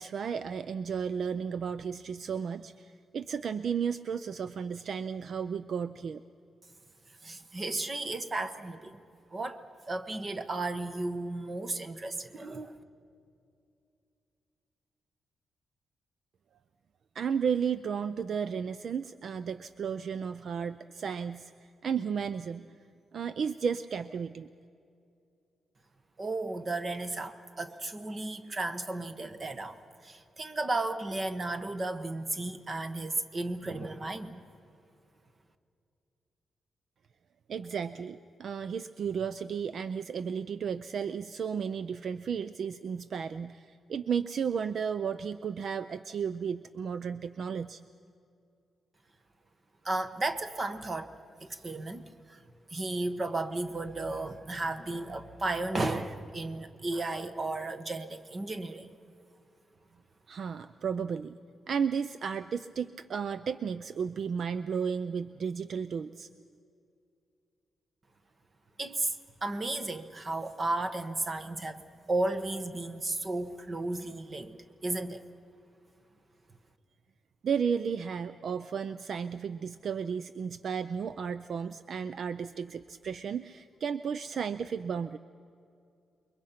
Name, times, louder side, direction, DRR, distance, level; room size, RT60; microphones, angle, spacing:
voice 1, 0.0-6.2 17.1-21.5 21.8-22.7 23.1-24.5 37.5-47.8 60.3-61.4 61.7-66.3 77.4-85.2, right 7 dB, 55° right, 13 dB, 0.4 m, -33 dB
voice 2, 7.2-9.0 9.3-12.8 26.2-34.4 49.8-51.1 51.4-52.4 52.7-59.0 68.8-69.2 69.4-71.8 72.1-74.5 74.8-75.2, right 2 dB, 30° right, 10 dB, 1.2 m, -34 dB
28.5 x 22.5 x 5.8 m, 2.5 s
wide cardioid pair, 150°, 0 cm